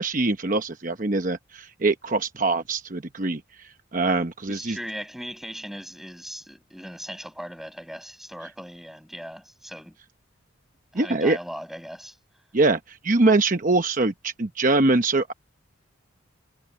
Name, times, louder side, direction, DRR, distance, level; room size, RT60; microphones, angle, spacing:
voice 1, 0.0-3.4 3.9-4.8 10.9-11.4 12.5-15.3, right 2 dB, 40° right, 1.0 m, -23 dB
voice 2, 4.5-10.0 10.9-12.2, equal, ahead, 7.9 m, -38 dB
head